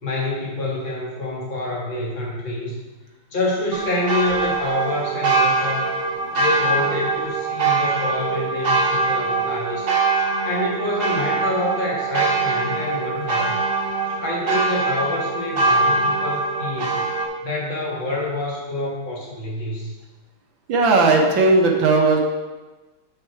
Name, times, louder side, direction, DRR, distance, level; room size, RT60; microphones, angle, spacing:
voice 1, 0.0-2.8 3.3-5.9 6.3-9.9 10.4-13.6 14.1-17.0 17.4-19.9, left 2 dB, 65° left, -4 dB, 2.7 m, -27 dB
sound 1, 3.7-17.2, right 3 dB, 50° right, 1.8 m, -22 dB
voice 2, 20.7-22.2, right 3 dB, 70° right, 1 dB, 1.7 m, -16 dB
7.2 x 6.6 x 4.7 m, 1.2 s
omnidirectional pair, 2.3 m